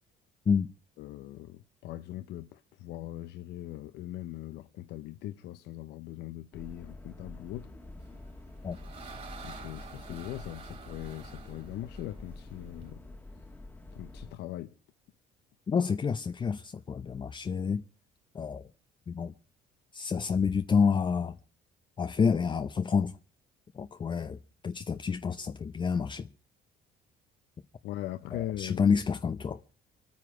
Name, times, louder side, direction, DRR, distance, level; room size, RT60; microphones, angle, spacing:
voice 1, 1.0-7.7 9.4-13.0 13.9-14.7 27.8-28.8, left 14 dB, 80° left, 0.7 m, -40 dB
sound 1, 6.5-14.3, left 2 dB, 10° left, 1.5 m, -47 dB
sound 2, 8.2-12.9, right 5 dB, 40° right, 3.8 m, -49 dB
voice 2, 15.7-17.8 18.3-18.7 19.1-19.3 19.9-21.4 22.0-23.1 23.7-24.4 24.6-26.3 28.3-29.6, left 6 dB, 30° left, 0.6 m, -28 dB
26.0 x 9.6 x 4.9 m
cardioid pair, 110°, 17 cm